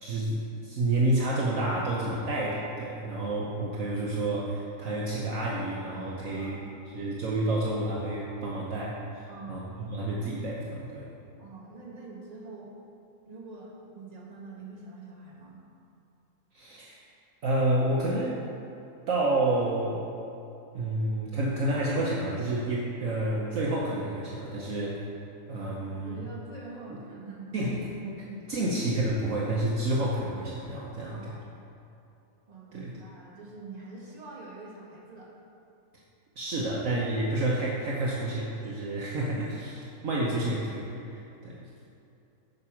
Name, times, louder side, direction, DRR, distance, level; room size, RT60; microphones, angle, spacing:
voice 1, 0.0-6.6 6.9-9.0 9.5-11.1 16.5-17.0 17.4-18.4 19.1-20.0 20.7-25.0 25.5-26.2 26.9-27.0 27.5-31.2 32.7-32.9 36.4-41.7, right 1 dB, 60° right, -4 dB, 1.2 m, -29 dB
voice 2, 6.3-6.7 9.3-9.7 11.4-12.7 13.2-15.6 26.0-27.7 31.0-31.5 32.5-35.3, right 3 dB, 25° right, -5 dB, 1.7 m, -45 dB
9.3 x 5.4 x 5.8 m, 2.7 s
omnidirectional pair, 1.7 m